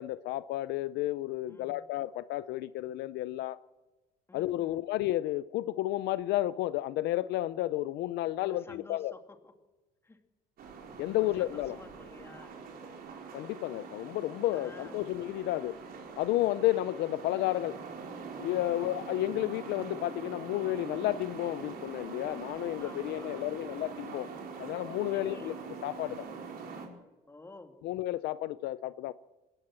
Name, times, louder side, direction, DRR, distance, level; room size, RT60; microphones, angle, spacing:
voice 1, 0.0-3.6 4.3-9.1 11.0-11.8 13.3-15.8 16.2-17.8 18.4-24.3 24.6-25.5 25.8-26.3 27.8-29.1, left 15 dB, 85° left, 0.6 m, -32 dB
voice 2, 1.5-1.8 4.3-4.8 8.4-9.5 10.0-10.2 11.2-12.5 14.5-15.0 18.6-18.8 22.8-23.7 25.1-25.5 27.3-27.8, left 2 dB, 15° left, 2.5 m, -52 dB
sound 1, 10.6-26.9, right 5 dB, 60° right, 4.8 m, -43 dB
20.5 x 17.0 x 7.6 m
cardioid pair, 110°, 17 cm